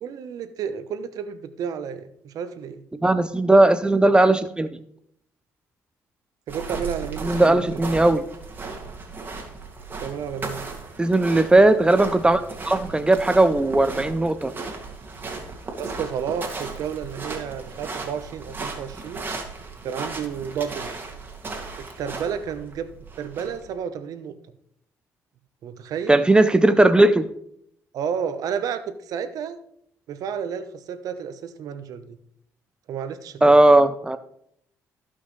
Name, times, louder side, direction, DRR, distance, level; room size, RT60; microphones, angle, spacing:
voice 1, 0.0-2.8 6.5-7.6 10.0-10.7 15.8-19.3 19.8-21.0 21.8-22.9 23.2-24.3 25.6-26.2 27.9-29.6 30.1-32.2 32.9-33.6, right 7 dB, 75° right, 10 dB, 1.0 m, -31 dB
voice 2, 3.0-4.7 7.2-8.2 11.0-14.5 26.1-27.3 33.4-34.2, right 2 dB, 15° right, 12 dB, 0.6 m, -17 dB
sound 1, 6.5-23.7, right 3 dB, 35° right, 2.3 m, -36 dB
15.0 x 5.7 x 3.2 m, 0.70 s
cardioid pair, 85°, 6 cm